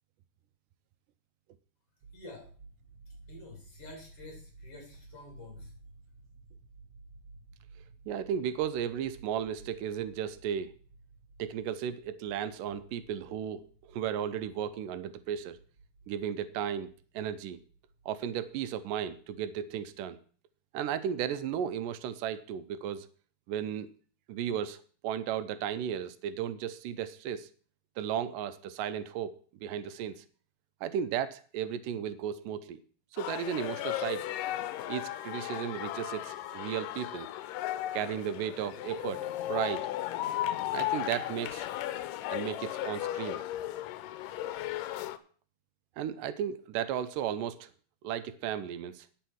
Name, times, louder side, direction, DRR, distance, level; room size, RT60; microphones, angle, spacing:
sound 1, 2.0-20.1, right 3 dB, 60° right, 1.2 m, -56 dB
voice 1, 2.1-2.5 3.1-5.7, left 2 dB, 45° left, 0 dB, 4.2 m, -49 dB
voice 2, 8.1-10.7 11.4-15.6 16.1-17.6 18.1-20.2 20.7-23.1 23.5-23.9 24.3-27.5 28.0-29.4 29.6-30.2 30.8-32.8 33.1-34.3 34.9-37.3 37.9-39.9 40.7-41.7 42.3-43.4 46.0-47.7 48.0-49.1, right 9 dB, 85° right, 13 dB, 2.3 m, -35 dB
sound 2, 33.2-45.2, left 14 dB, 85° left, 2.3 m, -35 dB
9.4 x 8.0 x 6.2 m, 0.43 s
omnidirectional pair, 3.8 m